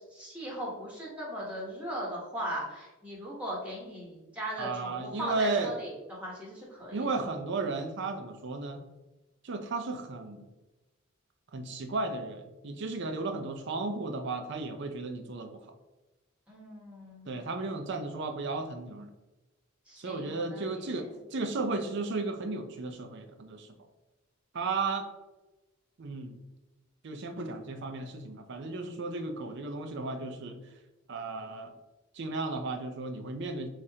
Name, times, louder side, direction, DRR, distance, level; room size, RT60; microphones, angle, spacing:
voice 1, 0.1-7.1 16.5-17.4 19.9-21.1, equal, 5° right, -4 dB, 1.0 m, -38 dB
voice 2, 4.6-5.7 6.9-8.8 9.4-10.5 11.5-15.6 17.3-19.1 20.0-23.7 24.5-25.1 26.0-26.4 27.0-30.6 31.1-31.7 32.1-33.7, right 3 dB, 55° right, 7 dB, 0.5 m, -34 dB
7.4 x 2.5 x 2.8 m, 1.1 s
head